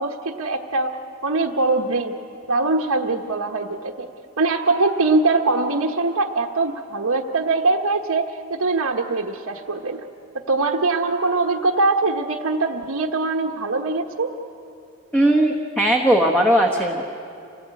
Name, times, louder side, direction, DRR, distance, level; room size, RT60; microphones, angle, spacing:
voice 1, 0.0-2.1 2.5-4.1 4.4-10.1 10.5-14.3, right 3 dB, 90° right, -1 dB, 1.2 m, -22 dB
voice 2, 15.1-17.1, right 1 dB, 5° left, 2 dB, 1.2 m, -18 dB
27.5 x 17.0 x 8.3 m, 2.7 s
head